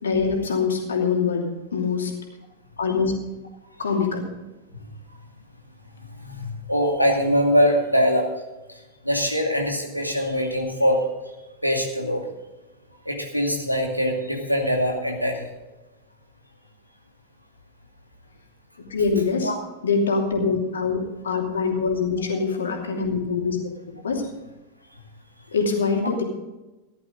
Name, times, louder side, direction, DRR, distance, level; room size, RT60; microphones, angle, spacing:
voice 1, 0.0-2.1 2.8-3.1 3.8-4.2 18.9-19.5 19.8-23.6 24.0-24.3 25.5-26.2, left 5 dB, 70° left, 1 dB, 2.8 m, -24 dB
voice 2, 6.2-8.2 9.0-11.0 11.6-12.2 13.1-15.5 19.4-19.6, equal, 90° right, 2 dB, 2.4 m, -22 dB
15.5 x 12.0 x 3.9 m, 1.1 s
figure-of-eight pair, 90°, 0 cm